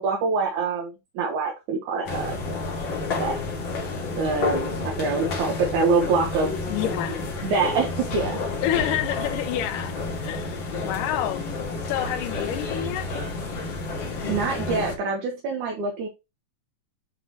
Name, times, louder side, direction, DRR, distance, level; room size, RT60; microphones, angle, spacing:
voice 1, 0.0-2.6 3.2-3.4 4.2-6.5 7.4-8.4 14.3-16.1, right 4 dB, 70° right, 2.4 m, -25 dB
sound 1, 2.0-15.0, left 3 dB, 50° left, 1.6 m, -30 dB
voice 2, 6.7-7.2 8.6-11.4 11.9-13.1, left 12 dB, 85° left, 2.2 m, -28 dB
9.3 x 3.8 x 2.9 m
omnidirectional pair, 3.8 m